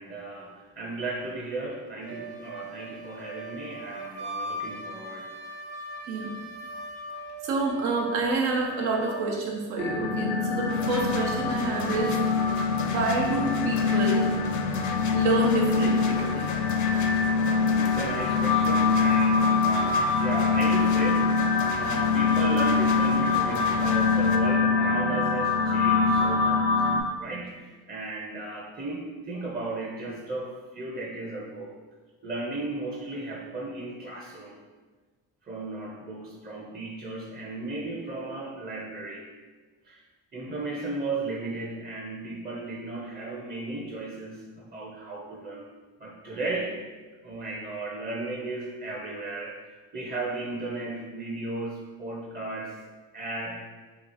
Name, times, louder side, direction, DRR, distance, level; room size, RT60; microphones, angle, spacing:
voice 1, 0.0-5.3 17.5-26.9 27.2-31.8 32.2-34.6 35.4-39.3 39.9-40.0 40.3-45.7 46.0-46.8 47.2-49.6 49.9-52.8 53.1-53.6, right 2 dB, 20° right, -1 dB, 0.5 m, -35 dB
Wind instrument woodwind instrument, 2.0-9.5, right 1 dB, 65° right, 0.8 m, -39 dB
voice 2, 7.4-12.2 12.5-12.6 12.8-14.3 15.1-16.7, right 3 dB, 90° right, -1 dB, 0.7 m, -28 dB
sound 1, 9.8-27.0, left 4 dB, 80° left, 0.7 m, -24 dB
sound 2, 10.7-24.4, left 5 dB, 40° left, 0.4 m, -37 dB
3.0 x 2.4 x 3.9 m, 1.3 s
supercardioid pair, 55°, 47 cm